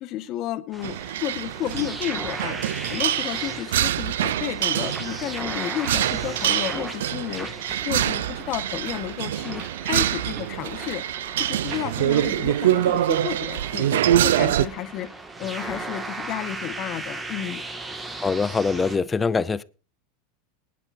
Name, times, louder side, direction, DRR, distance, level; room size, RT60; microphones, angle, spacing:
voice 1, 0.0-2.6 2.9-7.5 7.8-11.0 11.4-15.1 15.4-17.6, left 12 dB, 50° left, 1.4 m, -32 dB
sound 1, 0.7-19.0, right 2 dB, 15° right, 2.0 m, -37 dB
sound 2, 0.8-14.7, right 12 dB, 85° right, 0.5 m, -25 dB
voice 2, 18.2-19.6, left 4 dB, 20° left, 0.6 m, -23 dB
19.5 x 11.0 x 2.7 m
supercardioid pair, 115°, 0 cm